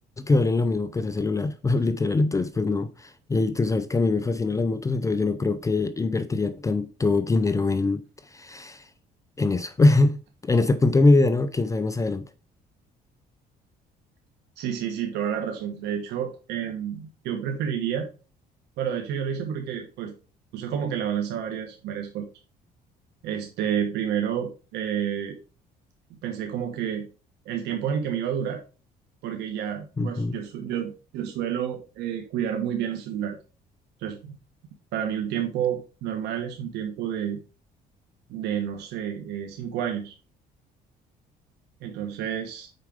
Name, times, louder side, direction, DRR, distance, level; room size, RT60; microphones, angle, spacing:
voice 1, 0.2-8.9 9.4-12.3 30.0-30.4, left 3 dB, 20° left, 0.5 m, -23 dB
voice 2, 14.6-18.1 18.8-20.1 20.5-22.3 23.2-25.4 26.1-27.1 27.4-28.6 29.2-33.4 34.0-34.4 34.9-37.4 38.3-40.1 41.8-42.7, right 9 dB, 85° right, 1.3 m, -30 dB
6.6 x 4.8 x 4.9 m
cardioid pair, 110°, 17 cm